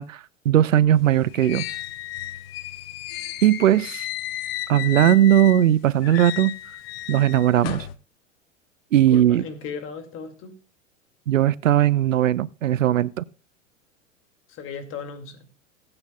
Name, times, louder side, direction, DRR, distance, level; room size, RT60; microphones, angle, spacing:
voice 1, 0.0-1.6 3.4-4.1 4.7-6.5 7.1-7.9 8.9-9.4 11.3-13.2, right 11 dB, 75° right, 0.5 m, -18 dB
sound 1, 1.0-5.7 6.0-8.0, left 14 dB, 50° left, 1.0 m, -33 dB
voice 2, 8.9-10.5 14.5-15.5, left 6 dB, 35° left, 2.1 m, -36 dB
19.5 x 8.7 x 2.2 m
figure-of-eight pair, 90°, 39 cm